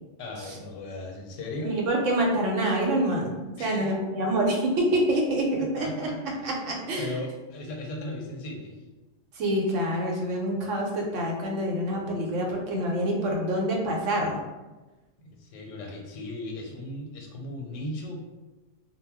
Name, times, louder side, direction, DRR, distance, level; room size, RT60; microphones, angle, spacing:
voice 1, 0.2-1.8 3.6-3.9 5.6-6.2 7.0-8.8 15.2-18.2, left 1 dB, 90° left, 2 dB, 0.9 m, -37 dB
voice 2, 1.6-6.1 6.4-7.2 9.3-14.4, right 1 dB, 85° right, 0 dB, 1.0 m, -26 dB
2.2 x 2.0 x 3.4 m, 1.1 s
omnidirectional pair, 1.2 m